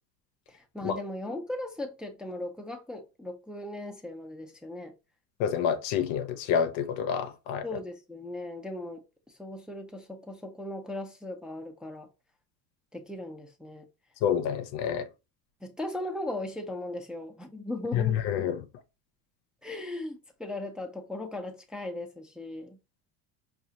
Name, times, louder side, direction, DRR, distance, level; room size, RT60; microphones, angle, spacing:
voice 1, 0.5-4.9 7.6-12.1 12.9-13.9 15.6-18.2 19.6-22.8, left 1 dB, ahead, 0.6 m, -38 dB
voice 2, 5.4-7.6 14.2-15.1 17.9-18.6, left 8 dB, 65° left, 0.7 m, -28 dB
4.7 x 2.4 x 2.8 m
hypercardioid pair, 80°, 49 cm